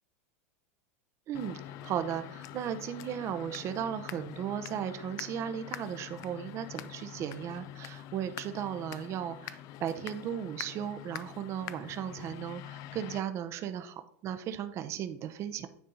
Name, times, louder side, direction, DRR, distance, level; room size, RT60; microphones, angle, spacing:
sound 1, 1.3-13.2, left 12 dB, 45° left, 0.4 m, -45 dB
voice 1, 1.3-15.7, right 9 dB, 35° right, 9 dB, 0.7 m, -36 dB
9.5 x 3.6 x 3.9 m, 0.68 s
supercardioid pair, 120°, 8 cm